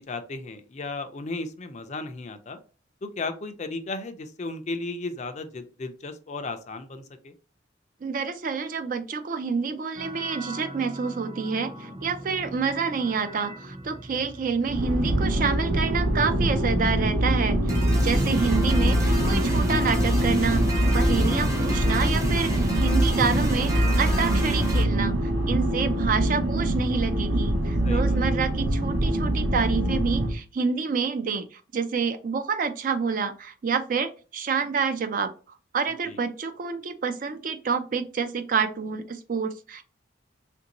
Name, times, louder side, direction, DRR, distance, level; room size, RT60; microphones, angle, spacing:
voice 1, 0.1-2.6 3.0-7.3 27.8-28.2 36.1-36.2, left 3 dB, 35° left, 8 dB, 0.4 m, -35 dB
voice 2, 8.0-20.6 20.9-35.3 35.7-39.8, right 5 dB, 45° right, 9 dB, 0.4 m, -28 dB
sound 1, 10.0-24.8, equal, 20° right, 0.7 m, -29 dB
sound 2, 14.7-30.3, right 1 dB, 80° right, 0.7 m, -24 dB
3.4 x 2.6 x 2.9 m, 0.36 s
head